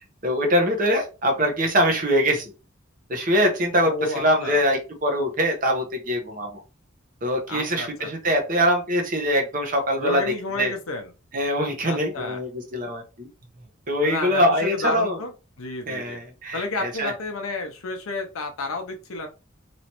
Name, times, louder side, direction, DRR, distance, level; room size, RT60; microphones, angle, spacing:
voice 1, 0.2-2.5 3.1-6.6 7.2-10.7 11.3-13.3 13.9-15.2 15.9-17.1, equal, 40° right, 2 dB, 0.9 m, -23 dB
voice 2, 3.8-4.6 7.5-8.4 10.0-11.1 11.8-12.4 14.0-15.3 15.6-16.2 16.5-19.3, left 2 dB, 85° left, 4 dB, 0.6 m, -31 dB
3.0 x 3.0 x 2.9 m, 0.31 s
head